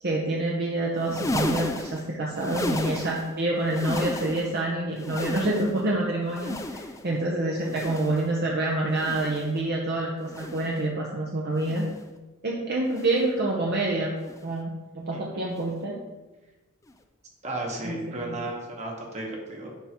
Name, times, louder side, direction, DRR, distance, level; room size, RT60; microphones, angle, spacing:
voice 1, 0.0-11.9 12.4-14.1 14.4-16.0 17.8-18.0 18.2-18.4, right 2 dB, 50° right, -2 dB, 0.7 m, -27 dB
sound 1, 0.9-3.4 3.6-4.6 4.9-5.9 6.3-7.2 7.6-8.4 8.9-9.6 10.2-10.8 11.5-12.1 12.9-13.3 14.2-14.5 15.5-15.7 16.9-17.0, left 1 dB, 15° left, 0.3 m, -34 dB
voice 2, 17.4-19.7, right 2 dB, 30° right, 0 dB, 1.1 m, -34 dB
10.0 x 3.5 x 2.9 m, 1.1 s
head